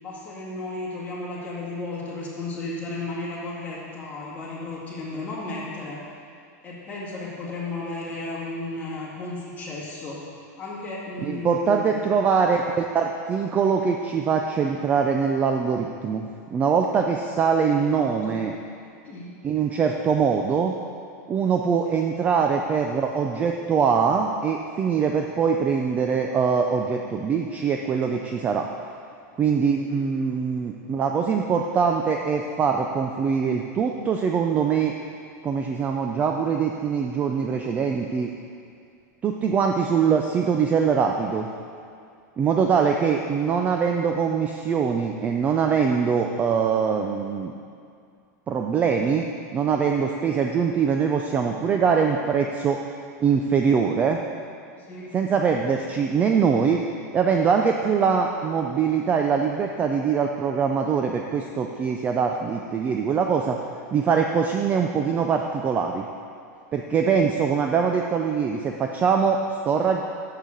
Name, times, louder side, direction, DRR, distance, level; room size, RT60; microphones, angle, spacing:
voice 1, 0.0-6.1 6.6-10.2 10.6-11.9 17.7-18.4 19.0-19.3 21.9-22.0 29.8-29.9 54.7-55.1, left 2 dB, 15° left, -7 dB, 2.1 m, -34 dB
voice 2, 11.2-18.5 19.4-20.8 21.3-28.7 29.3-34.9 35.4-38.3 39.2-41.5 42.4-47.5 48.5-52.8 53.2-54.2 55.1-56.8 57.1-63.6 63.9-66.1 66.7-70.0, right 6 dB, 15° right, 3 dB, 0.3 m, -23 dB
6.6 x 6.2 x 7.0 m, 2.3 s
supercardioid pair, 155°, 10 cm